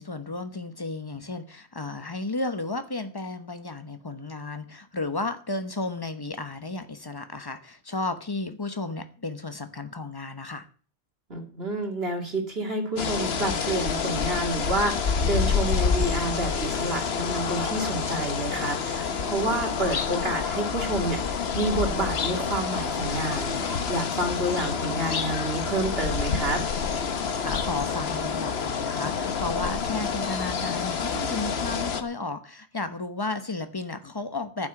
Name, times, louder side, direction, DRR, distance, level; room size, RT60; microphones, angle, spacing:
voice 1, 0.0-10.7 27.4-34.7, left 3 dB, 20° left, 0.9 m, -33 dB
voice 2, 11.3-26.6, right 1 dB, 50° right, 2.5 m, -29 dB
sound 1, 13.0-32.0, left 6 dB, 55° left, 1.2 m, -28 dB
11.5 x 6.3 x 9.1 m
omnidirectional pair, 1.4 m